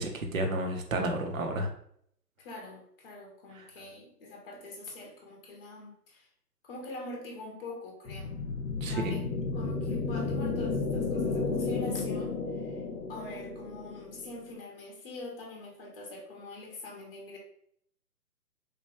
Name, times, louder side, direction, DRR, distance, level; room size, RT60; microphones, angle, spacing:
voice 1, 0.0-1.7 3.6-3.7 8.8-9.1, right 1 dB, 55° right, 4 dB, 0.6 m, -31 dB
voice 2, 2.4-6.3 6.6-8.4 8.8-9.2 9.5-12.8 13.1-17.4, left 2 dB, 35° left, 0 dB, 0.8 m, -44 dB
sound 1, 8.1-14.5, left 4 dB, 70° left, 0.8 m, -32 dB
3.2 x 2.2 x 2.9 m, 0.67 s
figure-of-eight pair, 135°, 48 cm